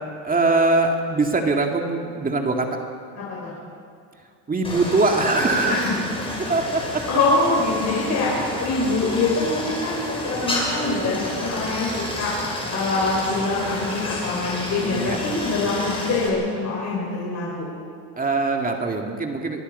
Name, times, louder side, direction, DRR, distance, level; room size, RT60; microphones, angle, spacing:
voice 1, 0.2-2.7 4.5-6.0 6.4-7.1 14.8-15.2 18.2-19.6, right 3 dB, 20° right, 3 dB, 2.2 m, -22 dB
voice 2, 3.2-3.5 5.7-6.0 7.1-12.3 12.7-17.7, left 3 dB, 40° left, -5 dB, 5.9 m, -24 dB
Stream, 4.6-16.3, left 1 dB, 15° left, 5.9 m, -30 dB
25.0 x 21.0 x 5.5 m, 2.3 s
cardioid pair, 120°, 40 cm